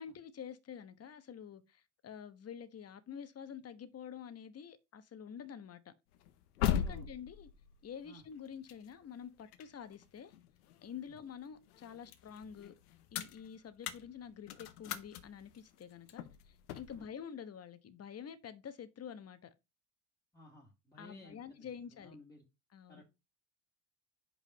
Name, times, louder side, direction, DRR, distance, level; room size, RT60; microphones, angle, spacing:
voice 1, 0.0-5.9 6.6-7.5 7.8-10.3 10.8-12.7 13.1-19.5 21.0-22.2 22.7-23.0, left 8 dB, 35° left, 1.2 m, -48 dB
sound 1, 6.1-11.2 11.6-17.0, left 10 dB, 90° left, 0.9 m, -40 dB
voice 2, 20.3-22.4 22.9-23.0, left 1 dB, 5° left, 2.1 m, -57 dB
5.5 x 4.7 x 5.5 m
supercardioid pair, 85°, 45 cm